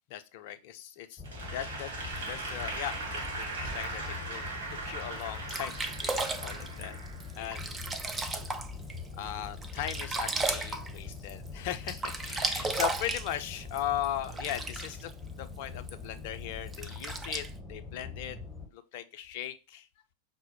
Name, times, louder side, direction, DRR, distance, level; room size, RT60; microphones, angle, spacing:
voice 1, 0.1-1.2 1.5-1.9 2.3-4.5 4.8-7.0 7.4-7.8 8.1-8.3 9.2-15.1 15.4-18.4 18.7-19.9, left 11 dB, 50° left, 9 dB, 0.4 m, -38 dB
sound 1, 1.2-18.7, left 4 dB, 10° left, 0.8 m, -43 dB
Applause / Crowd, 1.2-7.5, right 3 dB, 60° right, 1.3 m, -39 dB
Sink (filling or washing), 2.1-4.1 4.7-4.8 5.2-5.3 5.5-9.0 9.4-11.5 11.7-15.1 15.9-16.0 16.7-17.5, right 3 dB, 15° right, 0.4 m, -35 dB
5.5 x 2.0 x 2.9 m, 0.30 s
figure-of-eight pair, 90°, 0 cm